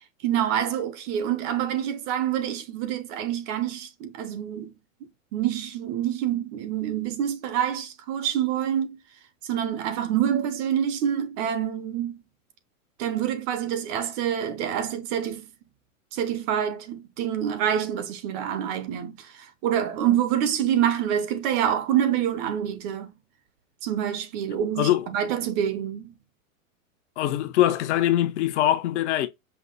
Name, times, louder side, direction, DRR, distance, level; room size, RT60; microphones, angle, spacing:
voice 1, 0.2-4.7 5.3-9.0 9.4-12.2 13.0-15.5 16.1-23.1 23.8-26.1, right 10 dB, 35° right, 0.7 m, -26 dB
voice 2, 24.8-25.1 27.2-29.3, left 13 dB, 55° left, 1.0 m, -22 dB
5.7 x 2.1 x 3.9 m
hypercardioid pair, 140°, 41 cm